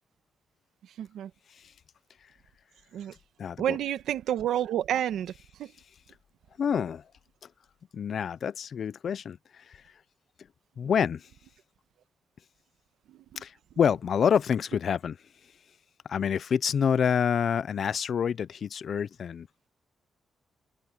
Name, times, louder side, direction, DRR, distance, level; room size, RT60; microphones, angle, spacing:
voice 1, 1.0-1.3 2.9-3.1 3.6-5.3 5.6-5.7 13.1-13.4, right 11 dB, 85° right, 1.4 m, -30 dB
voice 2, 3.4-3.8 6.6-7.0 7.9-9.8 10.8-11.3 13.4-15.2 16.1-19.5, left 7 dB, 60° left, 0.6 m, -27 dB
cardioid pair, 90°, 0 cm